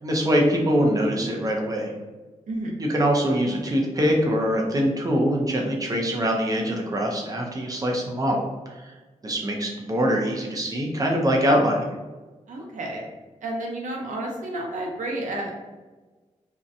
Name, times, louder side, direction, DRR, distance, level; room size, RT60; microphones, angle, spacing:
voice 1, 0.0-1.9 2.8-8.4 9.2-11.9, equal, 30° right, 0 dB, 0.5 m, -23 dB
voice 2, 2.5-2.8 12.5-13.1 13.4-15.5, right 1 dB, 85° right, -1 dB, 0.6 m, -31 dB
2.6 x 2.1 x 2.5 m, 1.2 s
wide cardioid pair, 120°, 13 cm